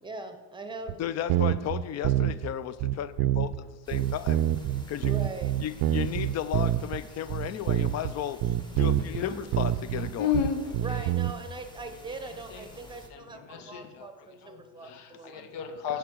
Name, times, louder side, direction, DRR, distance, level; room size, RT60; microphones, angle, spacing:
voice 1, 0.0-1.0 5.0-5.5 10.8-15.4, right 3 dB, 10° right, 0.8 m, -41 dB
sound 1, 0.9-1.0 1.3-2.5 2.8-3.6 3.9-7.0 7.3-8.1 8.4-9.2 9.5-11.3, right 12 dB, 60° right, 0.5 m, -26 dB
voice 2, 1.0-4.5 4.9-5.2 5.6-8.4 8.7-10.3 13.8-14.3 14.8-15.0 15.3-15.5, left 10 dB, 40° left, 0.4 m, -35 dB
sound 2, 3.8-13.1, left 2 dB, 10° left, 1.1 m, -50 dB
voice 3, 8.7-9.4 10.0-11.1 11.9-12.7 13.1-14.1 14.4-16.0, left 7 dB, 70° left, 1.0 m, -34 dB
6.8 x 4.9 x 6.2 m
supercardioid pair, 95°, 43 cm